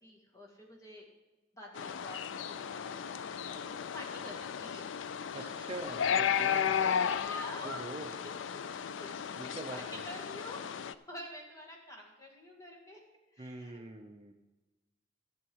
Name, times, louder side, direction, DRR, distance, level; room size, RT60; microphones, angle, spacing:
voice 1, 0.0-1.1 1.5-2.2 2.5-7.8 8.5-13.0 13.3-13.8, equal, 15° left, -1 dB, 2.0 m, -49 dB
sound 1, 1.8-10.9, left 8 dB, 85° left, 0.4 m, -34 dB
voice 2, 5.3-6.8 7.6-8.1 9.4-10.0 13.4-14.3, right 2 dB, 30° right, 4 dB, 0.7 m, -44 dB
15.0 x 7.2 x 4.7 m, 1.1 s
head